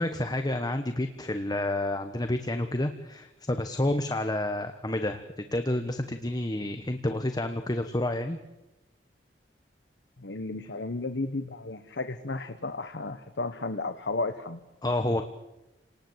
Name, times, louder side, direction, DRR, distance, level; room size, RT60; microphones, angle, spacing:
voice 1, 0.0-8.4 14.8-15.2, left 1 dB, 25° left, 7 dB, 1.1 m, -29 dB
voice 2, 10.2-14.6, left 3 dB, 75° left, 8 dB, 1.2 m, -33 dB
29.5 x 19.0 x 8.0 m, 1.0 s
head